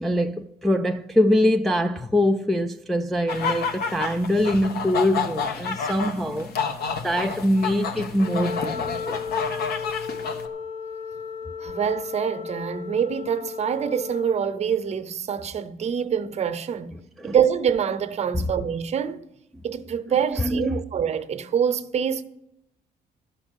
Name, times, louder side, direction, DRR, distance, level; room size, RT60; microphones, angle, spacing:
voice 1, 0.0-6.5 7.0-9.2 17.2-17.4 18.3-18.5 20.4-20.8, left 1 dB, ahead, 0.3 m, -23 dB
sound 1, 3.3-10.5, left 6 dB, 75° left, 1.2 m, -30 dB
Wind instrument woodwind instrument, 8.2-14.5, left 6 dB, 40° left, 0.7 m, -34 dB
voice 2, 11.6-17.0 17.2-19.2 19.6-22.2, right 8 dB, 40° right, 0.7 m, -25 dB
12.0 x 6.0 x 8.0 m
cardioid pair, 140°, 17 cm